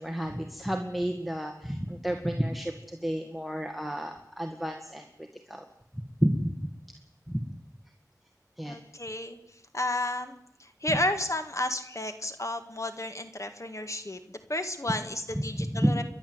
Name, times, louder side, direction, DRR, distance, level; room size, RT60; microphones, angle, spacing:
voice 1, 0.0-5.6 5.9-6.5 7.3-7.6 8.6-8.8 10.9-11.0 15.3-16.0, equal, ahead, 3 dB, 2.0 m, -31 dB
voice 2, 8.6-9.4 9.7-16.0, left 1 dB, 50° left, 8 dB, 2.0 m, -32 dB
29.5 x 12.0 x 8.1 m, 0.76 s
wide cardioid pair, 45°, 7 cm